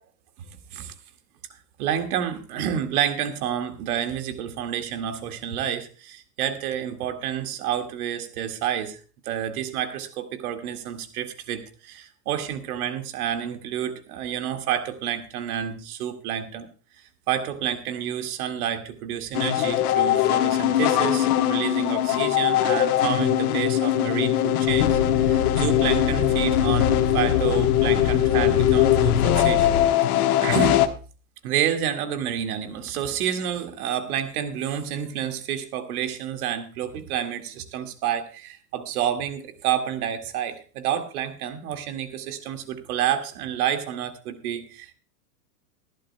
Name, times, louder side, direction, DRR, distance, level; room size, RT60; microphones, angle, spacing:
voice 1, 0.5-0.9 1.8-16.7 16.9-30.0 30.4-30.8 31.4-44.9, right 9 dB, 65° right, 7 dB, 2.2 m, -29 dB
sound 1, 19.3-30.9, left 12 dB, 65° left, 1.3 m, -21 dB
sound 2, 24.7-29.9, left 6 dB, 90° left, 2.3 m, -27 dB
20.5 x 11.5 x 2.2 m, 0.37 s
hypercardioid pair, 115°, 48 cm